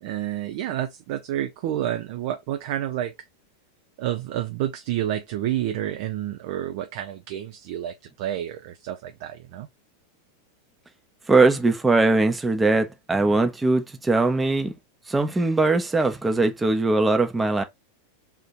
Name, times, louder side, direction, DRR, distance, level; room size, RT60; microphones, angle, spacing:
voice 1, 0.0-3.1 4.0-9.7, right 12 dB, 50° right, 0.6 m, -29 dB
voice 2, 11.3-14.7 15.1-17.6, right 3 dB, 10° right, 0.9 m, -21 dB
3.6 x 2.8 x 4.3 m
figure-of-eight pair, 90°, 0 cm